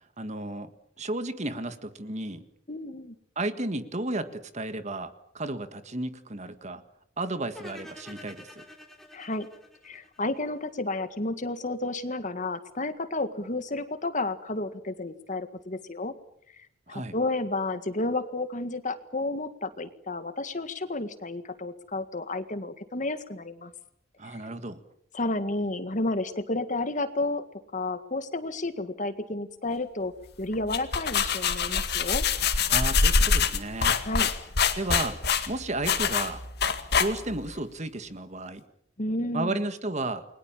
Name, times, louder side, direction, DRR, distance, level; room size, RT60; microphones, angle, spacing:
voice 1, 0.2-0.7 1.0-2.5 3.3-6.8 7.2-8.6 16.9-17.1 24.2-24.8 32.7-33.9 34.8-35.2 35.5-36.4 37.0-38.6 39.3-40.2, right 2 dB, 35° right, 10 dB, 1.7 m, -33 dB
voice 2, 2.7-3.1 9.1-9.5 9.8-16.1 16.5-23.7 25.1-27.4 27.7-30.1 30.4-32.2 34.0-34.3 39.0-39.6, left 2 dB, 40° left, 11 dB, 1.8 m, -31 dB
sound 1, 7.5-10.7, left 1 dB, ahead, 3.6 m, -48 dB
sound 2, 30.5-37.5, left 5 dB, 55° left, 2.1 m, -25 dB
29.5 x 22.0 x 7.4 m, 0.69 s
head